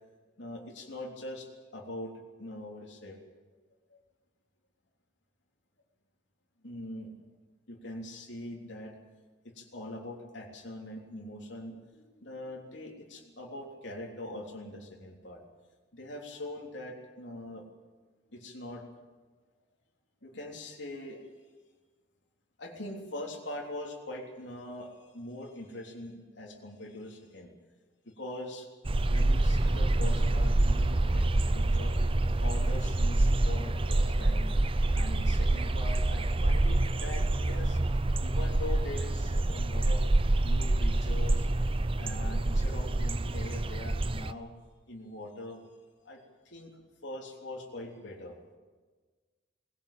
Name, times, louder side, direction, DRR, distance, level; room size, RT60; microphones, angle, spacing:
voice 1, 0.4-2.1 2.4-3.2 3.9-4.0 6.6-7.1 7.7-8.9 9.4-15.4 15.9-17.6 18.3-18.8 20.2-21.2 22.6-27.5 28.1-28.7 29.1-32.0 32.4-34.5 34.9-37.8 38.2-40.0 40.3-41.5 42.0-44.5 44.9-45.6 46.0-46.2 46.5-46.7 47.0-48.4, left 1 dB, 70° left, 0 dB, 3.5 m, -42 dB
sound 1, 28.8-44.3, right 2 dB, 30° right, 0.6 m, -27 dB
Thunder, 29.0-37.6 38.2-39.9 41.1-41.2 41.7-41.8 43.7-43.8 45.1-45.2 46.8-46.9, right 1 dB, 65° right, 2.2 m, -52 dB
20.0 x 17.0 x 8.8 m, 1.4 s
head